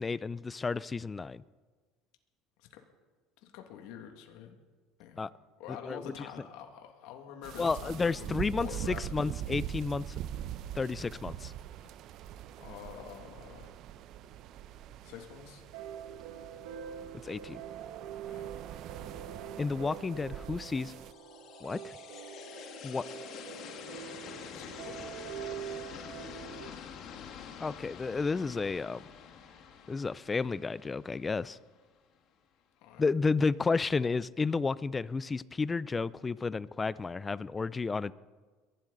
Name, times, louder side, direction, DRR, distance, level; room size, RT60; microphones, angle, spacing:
voice 1, 0.0-1.4 5.2-5.3 5.9-6.1 7.6-10.1 10.8-11.5 17.2-17.6 19.6-20.9 21.6-21.9 22.8-23.0 27.6-29.0 29.9-31.6 33.0-38.1, left 4 dB, 20° left, 19 dB, 0.4 m, -31 dB
voice 2, 3.4-4.6 5.0-5.3 5.6-9.4 12.6-13.7 15.0-15.6 18.3-18.6 24.5-25.0 32.8-33.1, left 9 dB, 75° left, 4 dB, 2.0 m, -47 dB
sound 1, 7.4-21.1, right 11 dB, 55° right, 0.6 m, -43 dB
sound 2, 15.7-26.7, right 9 dB, 85° right, 1.3 m, -45 dB
sound 3, 20.8-31.8, left 7 dB, 55° left, 1.8 m, -47 dB
22.0 x 12.0 x 4.0 m, 1.4 s
supercardioid pair, 110°, 0 cm